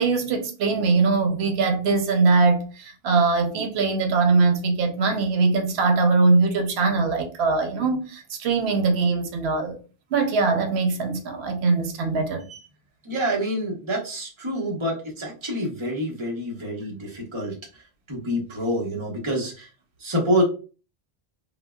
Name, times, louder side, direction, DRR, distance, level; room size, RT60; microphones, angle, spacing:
voice 1, 0.0-9.8 10.1-12.4, right 4 dB, 90° right, 0.9 m, -22 dB
voice 2, 13.0-17.8 18.1-19.7 20.0-20.4, equal, 30° right, 0.9 m, -27 dB
3.6 x 2.1 x 2.2 m
omnidirectional pair, 1.0 m